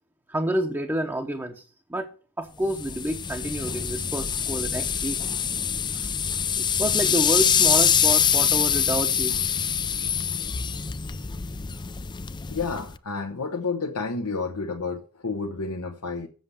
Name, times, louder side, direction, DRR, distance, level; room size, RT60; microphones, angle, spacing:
voice 1, 0.3-2.1 2.4-5.2 5.9-6.1 6.6-9.5, right 1 dB, 10° right, 0.8 m, -29 dB
sound 1, 2.7-13.0, left 7 dB, 20° left, 0.4 m, -25 dB
voice 2, 12.5-16.3, left 4 dB, 90° left, 1.1 m, -30 dB
7.8 x 7.0 x 7.8 m
head